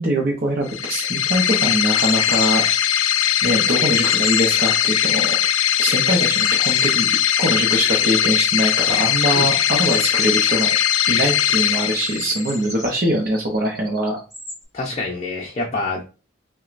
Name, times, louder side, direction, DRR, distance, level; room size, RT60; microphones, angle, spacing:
voice 1, 0.0-2.6 3.4-5.4 5.8-7.1 7.4-10.7 11.1-14.2, right 1 dB, 45° right, 0 dB, 0.7 m, -22 dB
sound 1, 0.7-12.6, left 10 dB, 75° left, 0.3 m, -19 dB
sound 2, 1.0-3.6 3.9-14.6, equal, ahead, 1.3 m, -37 dB
voice 2, 14.7-16.1, left 3 dB, 30° left, -1 dB, 0.6 m, -26 dB
6.0 x 2.2 x 2.5 m, 0.34 s
head